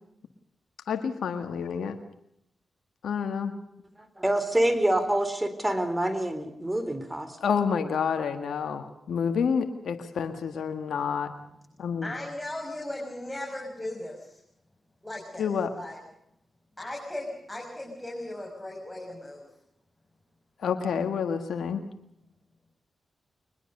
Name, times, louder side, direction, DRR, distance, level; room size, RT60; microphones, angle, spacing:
voice 1, 0.9-2.0 3.0-3.5 7.4-11.3 11.8-12.1 15.4-15.7 20.6-21.8, left 6 dB, 80° left, 6 dB, 1.8 m, -28 dB
voice 2, 4.0-7.3, right 1 dB, 20° right, 11 dB, 4.1 m, -26 dB
voice 3, 12.0-14.4 15.0-15.5 15.7-16.0 16.8-19.4, left 1 dB, 10° left, -1 dB, 6.6 m, -37 dB
23.0 x 20.5 x 6.7 m, 0.76 s
supercardioid pair, 45°, 0 cm